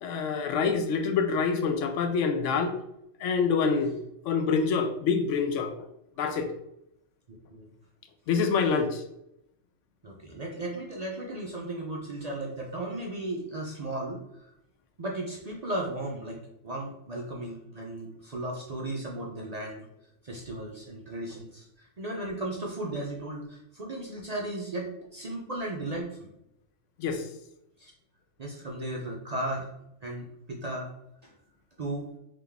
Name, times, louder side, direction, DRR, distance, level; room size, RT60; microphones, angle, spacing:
voice 1, 0.0-2.7 3.2-4.0 4.2-5.7 6.2-6.5 8.3-9.0 27.0-27.3, left 5 dB, 80° left, 6 dB, 0.9 m, -26 dB
voice 2, 7.3-7.7 10.0-14.5 15.0-16.4 16.6-19.8 20.2-26.3 27.8-27.9 28.4-29.7 30.0-30.9 31.2-31.4 31.8-32.1, right 1 dB, 45° right, -2 dB, 0.5 m, -35 dB
3.7 x 2.9 x 3.4 m, 0.80 s
omnidirectional pair, 1.3 m